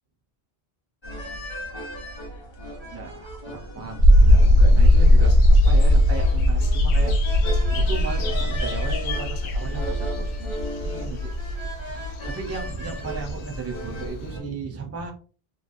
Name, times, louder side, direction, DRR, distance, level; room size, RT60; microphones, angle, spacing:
sound 1, 1.0-14.4, right 1 dB, 35° left, 0.6 m, -37 dB
voice 1, 2.9-7.1 7.7-11.3 11.6-15.1, right 4 dB, 20° right, 2 dB, 0.5 m, -36 dB
sound 2, 4.0-14.1, left 1 dB, 80° right, 0.8 m, -18 dB
sound 3, 4.1-14.3, left 6 dB, 85° left, 0.8 m, -41 dB
3.2 x 2.1 x 2.5 m, 0.37 s
omnidirectional pair, 1.1 m